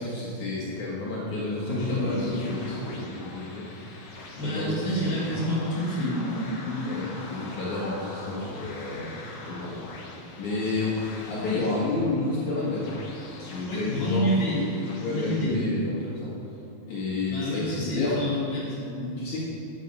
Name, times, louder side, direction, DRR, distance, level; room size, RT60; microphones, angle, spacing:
voice 1, 0.0-3.7 4.4-5.2 6.8-9.8 10.4-13.0 13.4-14.3 15.0-16.3 16.9-18.2 19.2-19.4, left 2 dB, 60° left, -7 dB, 2.5 m, -30 dB
sound 1, 1.7-15.5, left 2 dB, 80° left, 1.1 m, -43 dB
voice 2, 1.8-2.3 4.3-7.0 13.7-14.7 15.1-15.7 17.3-19.1, equal, 40° left, -7 dB, 3.6 m, -28 dB
10.0 x 8.3 x 5.3 m, 2.7 s
omnidirectional pair, 4.2 m